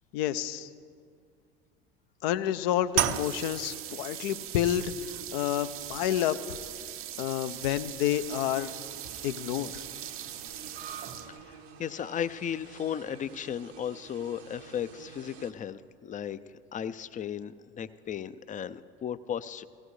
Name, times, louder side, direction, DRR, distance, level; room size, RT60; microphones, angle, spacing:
voice 1, 0.1-0.7 2.2-4.9 5.3-6.4 7.2-8.7 9.2-9.7, left 12 dB, 70° left, 12 dB, 0.7 m, -29 dB
sound 1, 2.9-11.5, right 11 dB, 45° right, 0.6 m, -37 dB
sound 2, 8.1-15.5, right 6 dB, 85° right, 1.3 m, -49 dB
voice 2, 11.3-16.4 16.7-19.6, left 9 dB, 25° left, 15 dB, 0.5 m, -35 dB
17.5 x 16.5 x 3.2 m, 2.1 s
hypercardioid pair, 80°, 31 cm